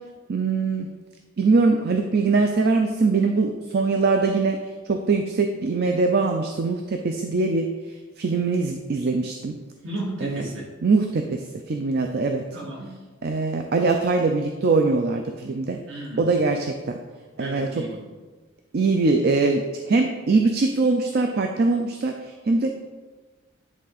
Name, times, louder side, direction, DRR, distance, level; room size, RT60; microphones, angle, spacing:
voice 1, 0.3-0.9 1.4-4.6 4.8-9.6 10.2-10.5 10.8-12.4 13.2-15.8 16.2-17.0 17.4-17.9 18.7-22.7, right 3 dB, 50° right, 4 dB, 0.5 m, -22 dB
voice 2, 9.8-10.6 12.5-12.9 15.9-16.3 17.4-18.0, right 1 dB, 65° right, -4 dB, 2.2 m, -34 dB
10.0 x 3.6 x 4.1 m, 1.3 s
head